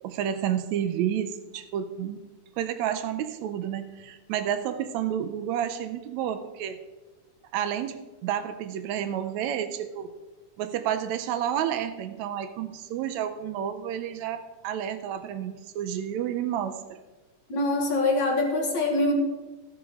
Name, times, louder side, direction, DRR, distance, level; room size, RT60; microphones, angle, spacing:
voice 1, 0.0-2.2 2.6-6.8 7.5-10.1 10.6-17.0, right 10 dB, 80° right, 9 dB, 1.7 m, -30 dB
voice 2, 17.5-19.1, left 2 dB, 45° left, 1 dB, 1.8 m, -24 dB
15.0 x 8.4 x 3.6 m, 1.2 s
omnidirectional pair, 3.6 m